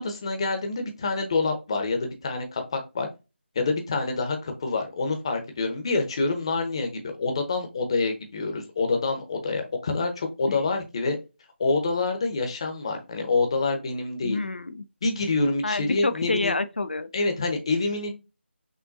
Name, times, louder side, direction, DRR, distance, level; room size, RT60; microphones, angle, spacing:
voice 1, 0.0-3.1 3.5-11.2 11.6-14.4 15.0-16.5 17.1-18.1, left 3 dB, 25° left, 0.9 m, -27 dB
voice 2, 14.2-14.9 15.6-17.1, left 3 dB, 55° left, 0.6 m, -28 dB
6.2 x 2.5 x 2.6 m
figure-of-eight pair, 160°, 7 cm